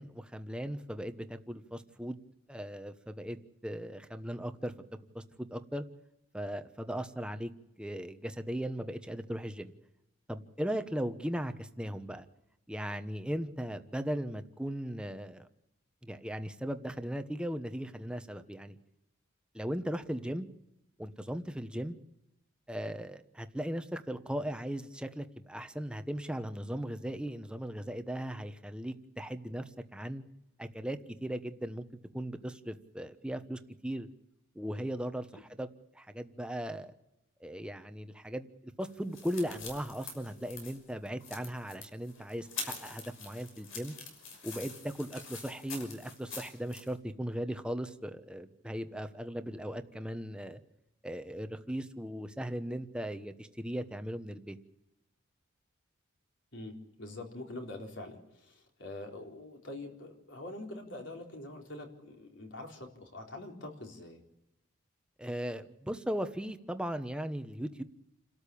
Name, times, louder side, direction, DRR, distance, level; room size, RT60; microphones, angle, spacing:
voice 1, 0.0-2.2 2.5-3.4 3.6-4.7 5.1-5.8 6.3-7.5 7.8-9.7 10.3-12.2 12.7-15.5 16.0-18.8 19.5-20.5 21.0-22.0 22.7-30.2 30.6-31.8 32.1-34.1 34.5-35.7 35.9-36.9 37.4-44.0 44.4-50.6 51.0-54.6 65.2-67.8, equal, 5° right, 8 dB, 1.1 m, -38 dB
sound 1, 38.8-46.9, left 4 dB, 80° left, 6.2 m, -45 dB
voice 2, 56.5-64.2, left 2 dB, 60° left, 2 dB, 4.0 m, -44 dB
29.0 x 13.5 x 8.7 m, 0.87 s
head